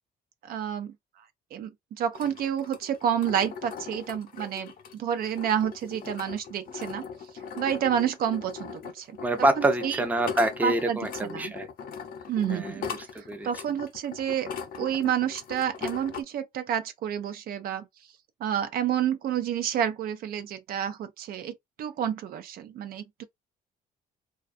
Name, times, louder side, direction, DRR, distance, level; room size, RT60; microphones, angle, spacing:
voice 1, 0.4-0.9 1.5-1.7 2.0-7.1 7.6-10.0 10.6-11.5 12.3-12.8 13.4-14.5 14.8-17.9 18.4-23.2, right 9 dB, 60° right, 0.5 m, -29 dB
sound 1, 2.1-16.2, left 6 dB, 55° left, 0.7 m, -39 dB
voice 2, 9.2-11.7 12.5-12.9 13.3-13.5, right 1 dB, 10° right, 0.5 m, -26 dB
2.3 x 2.3 x 2.5 m
cardioid pair, 110°, 17 cm